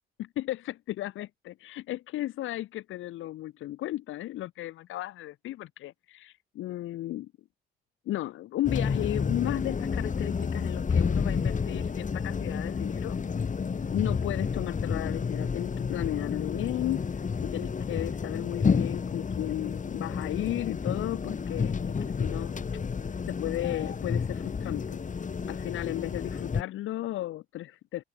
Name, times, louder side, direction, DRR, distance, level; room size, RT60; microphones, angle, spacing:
voice 1, 0.2-7.3 8.0-13.2 13.9-22.5 23.3-25.0 25.5-28.0, left 15 dB, 85° left, 3.4 m, -34 dB
sound 1, 8.6-26.6, left 5 dB, 40° left, 6.2 m, -30 dB
open air
cardioid pair, 90°, 20 cm